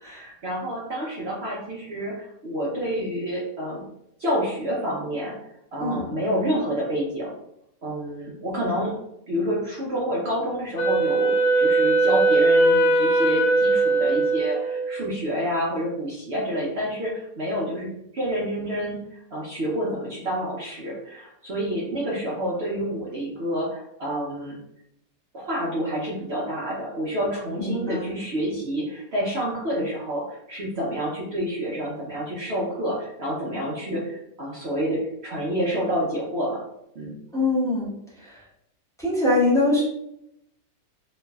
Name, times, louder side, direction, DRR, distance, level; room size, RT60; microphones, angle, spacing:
voice 1, 0.0-3.8 4.2-5.3 5.7-7.3 7.8-8.9 9.3-24.6 25.3-36.6 36.9-37.2, equal, 65° right, -6 dB, 0.6 m, -28 dB
voice 2, 5.8-6.1 27.6-28.1 37.3-37.9 38.2-38.4 39.0-39.8, left 2 dB, 5° left, -10 dB, 0.5 m, -23 dB
Wind instrument woodwind instrument, 10.8-15.1, right 2 dB, 50° left, 1.0 m, -20 dB
3.0 x 2.5 x 2.2 m, 0.78 s
omnidirectional pair, 1.9 m